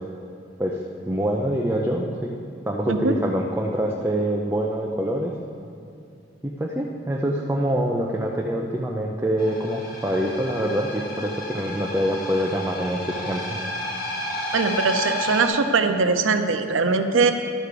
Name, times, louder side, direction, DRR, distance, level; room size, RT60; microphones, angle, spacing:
voice 1, 1.1-2.3 2.7-5.3 6.4-13.6, equal, 10° right, -1 dB, 0.5 m, -25 dB
sound 1, 9.4-15.5, left 1 dB, 50° left, 1.4 m, -31 dB
voice 2, 14.5-17.3, right 4 dB, 90° right, 7 dB, 0.6 m, -21 dB
12.0 x 4.8 x 6.7 m, 2.6 s
head